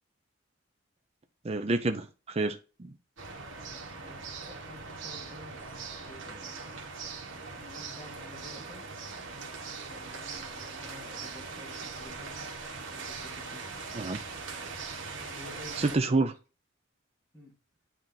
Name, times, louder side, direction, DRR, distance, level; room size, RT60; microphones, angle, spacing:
voice 1, 1.4-2.9 13.9-14.2 15.8-16.3, right 3 dB, 30° right, 0.5 m, -28 dB
sound 1, 3.2-16.0, right 4 dB, 70° right, 1.5 m, -41 dB
voice 2, 3.6-6.7 7.6-8.9 9.8-12.4 12.8-13.8 15.2-16.2 17.3-17.5, left 1 dB, 10° left, 1.8 m, -51 dB
8.8 x 2.9 x 4.0 m
head